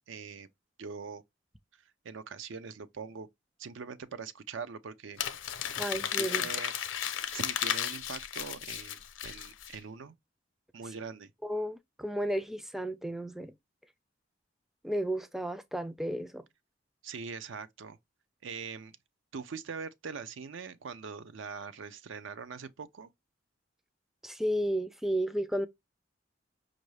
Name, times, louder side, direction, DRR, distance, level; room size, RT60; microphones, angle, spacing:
voice 1, 0.1-0.5 0.8-1.2 2.0-3.3 3.6-5.2 5.5-5.8 6.2-6.7 7.3-10.1 10.7-11.3 17.0-18.0 18.4-19.0 19.3-23.1, right 5 dB, 85° right, 0.5 m, -42 dB
Crumpling crinkling, 5.2-9.8, left 10 dB, 90° left, 0.6 m, -34 dB
voice 2, 5.8-6.4 11.4-13.5 14.8-16.5 24.2-25.7, right 1 dB, ahead, 0.3 m, -33 dB
5.3 x 2.5 x 3.1 m
head